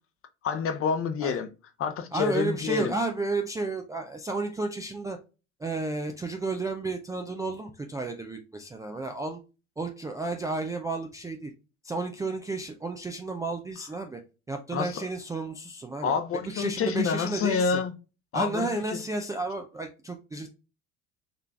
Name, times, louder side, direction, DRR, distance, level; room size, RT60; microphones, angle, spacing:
voice 1, 0.4-1.5 1.8-2.9 14.7-15.0 16.0-17.9 18.3-19.0, left 6 dB, 35° left, 0.7 m, -28 dB
voice 2, 2.1-5.2 5.6-9.4 9.8-11.5 11.8-14.2 14.5-16.1 16.4-17.8 18.3-20.5, right 3 dB, 10° right, 0.3 m, -32 dB
3.9 x 3.1 x 2.3 m
figure-of-eight pair, 65°, 40 cm